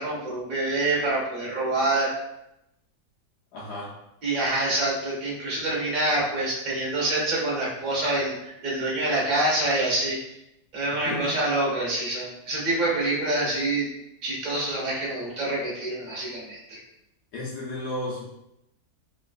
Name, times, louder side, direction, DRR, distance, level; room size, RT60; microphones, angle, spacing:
voice 1, 0.0-2.1 4.2-10.2 10.7-13.9 14.2-16.8, right 2 dB, 35° right, -5 dB, 0.9 m, -26 dB
voice 2, 3.5-4.0 10.9-11.3 17.3-18.2, left 1 dB, 80° left, -7 dB, 1.2 m, -33 dB
3.2 x 2.9 x 2.4 m, 0.86 s
omnidirectional pair, 1.7 m